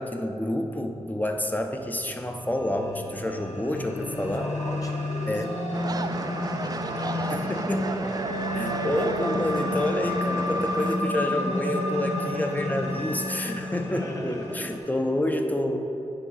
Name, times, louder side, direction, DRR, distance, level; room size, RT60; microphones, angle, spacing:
voice 1, 0.0-4.5 5.3-5.5 7.3-7.9 8.5-15.8, left 1 dB, 15° left, 4 dB, 0.7 m, -28 dB
sound 1, 1.7-14.8, left 1 dB, 85° left, 0.9 m, -31 dB
voice 2, 4.3-7.3 7.7-9.0 12.6-12.7 13.9-15.0, left 1 dB, 30° left, 0 dB, 1.5 m, -42 dB
sound 2, 5.7-11.0, right 3 dB, 35° right, 0.4 m, -33 dB
9.8 x 4.8 x 4.1 m, 2.9 s
cardioid pair, 45°, 11 cm